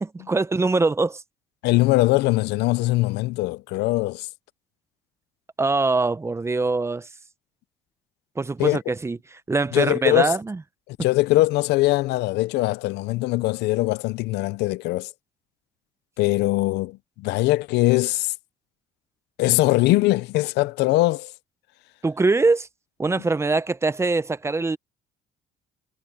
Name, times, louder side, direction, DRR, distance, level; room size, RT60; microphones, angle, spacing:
voice 1, 0.0-1.2 5.6-7.1 8.4-9.2 9.5-10.6 22.0-22.7 23.0-24.8, right 3 dB, 15° right, 0.7 m, -23 dB
voice 2, 1.6-4.3 8.6-8.8 9.7-10.3 10.9-15.1 16.2-18.3 19.4-21.3, left 19 dB, 85° left, 0.6 m, -21 dB
cardioid pair, 110°, 17 cm